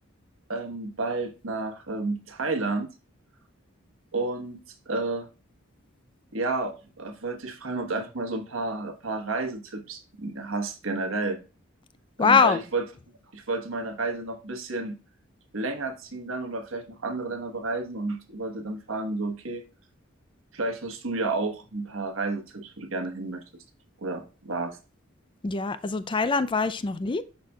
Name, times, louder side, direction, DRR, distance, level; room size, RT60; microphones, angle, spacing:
voice 1, 0.5-2.9 4.1-4.6 4.9-5.3 6.3-11.4 12.2-12.8 13.3-15.0 15.5-19.6 20.5-23.4 24.0-24.8, right 3 dB, 75° right, 1.3 m, -31 dB
voice 2, 12.2-12.6 25.4-27.2, left 5 dB, 25° left, 0.4 m, -23 dB
11.0 x 4.1 x 2.3 m
head